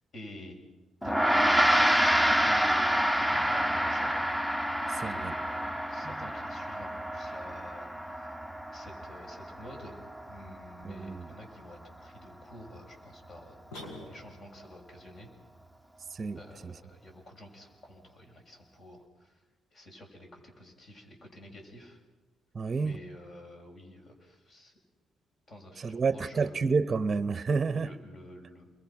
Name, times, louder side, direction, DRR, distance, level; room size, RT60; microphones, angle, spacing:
voice 1, 0.1-0.6 1.0-4.3 5.0-8.3 8.7-10.0 10.3-15.3 16.4-19.4 19.7-22.0 22.8-24.7 25.5-26.6 27.7-28.7, left 1 dB, 50° left, 6.9 m, -49 dB
Gong, 1.0-10.6, equal, 5° left, 0.9 m, -28 dB
voice 2, 10.9-11.2 16.2-16.4 22.6-23.0 25.8-27.9, right 4 dB, 35° right, 0.8 m, -29 dB
sound 1, 13.7-14.6, left 1 dB, 90° left, 5.0 m, -44 dB
29.0 x 22.5 x 5.9 m
cardioid pair, 90°, 0 cm